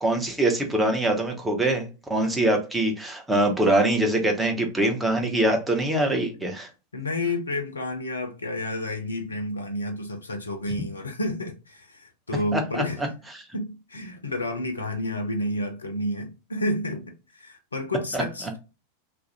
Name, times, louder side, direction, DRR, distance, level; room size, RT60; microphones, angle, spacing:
voice 1, 0.0-6.7 12.5-12.8 18.1-18.2, right 1 dB, 10° right, 0.6 m, -23 dB
voice 2, 6.9-13.0 13.5-18.6, left 1 dB, 75° left, 0.4 m, -30 dB
2.3 x 2.0 x 2.7 m
figure-of-eight pair, 90°, 0 cm